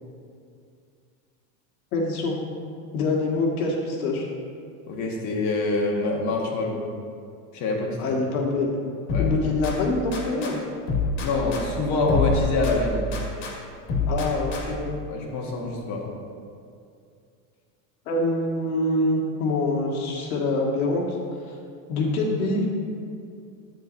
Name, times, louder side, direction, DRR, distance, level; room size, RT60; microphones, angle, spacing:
voice 1, 1.9-2.4 2.9-4.3 8.0-8.7 9.2-10.6 14.1-15.0 18.1-21.0 21.9-22.7, left 2 dB, 90° left, -2 dB, 2.0 m, -25 dB
voice 2, 4.9-6.8 7.5-8.0 9.1-9.3 11.2-13.0 15.1-16.0, left 2 dB, 45° left, -1 dB, 1.4 m, -25 dB
sound 1, 9.1-10.5 10.9-13.5 13.9-14.9, left 3 dB, 60° left, 2.0 m, -27 dB
10.5 x 9.1 x 2.7 m, 2.4 s
supercardioid pair, 135°, 42 cm